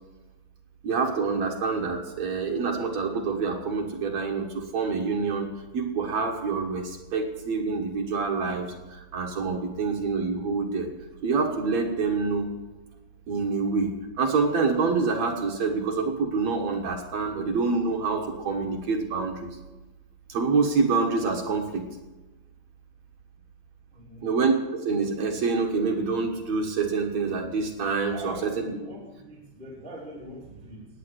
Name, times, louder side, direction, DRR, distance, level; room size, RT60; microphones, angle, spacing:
voice 1, 0.8-8.7 8.9-10.9 11.2-12.5 13.3-19.5 20.3-21.8 24.2-24.5 24.8-28.7, right 4 dB, 65° right, 1 dB, 1.7 m, -26 dB
voice 2, 23.9-24.3 28.1-30.9, right 1 dB, 15° right, -4 dB, 2.5 m, -42 dB
19.5 x 8.5 x 6.3 m, 1.1 s
omnidirectional pair, 5.3 m